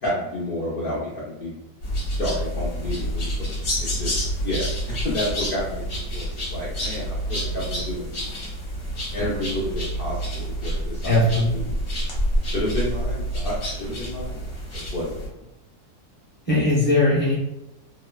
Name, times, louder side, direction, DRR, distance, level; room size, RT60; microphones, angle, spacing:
voice 1, 0.0-1.6 2.2-8.2 9.1-11.7 12.5-14.4 14.7-15.2, left 1 dB, 70° left, -7 dB, 0.5 m, -30 dB
sound 1, 1.8-15.3, equal, 50° left, 1.0 m, -28 dB
voice 2, 11.0-11.5 16.5-17.3, left 1 dB, 10° left, -7 dB, 0.5 m, -19 dB
3.0 x 2.0 x 2.3 m, 0.92 s
omnidirectional pair, 1.6 m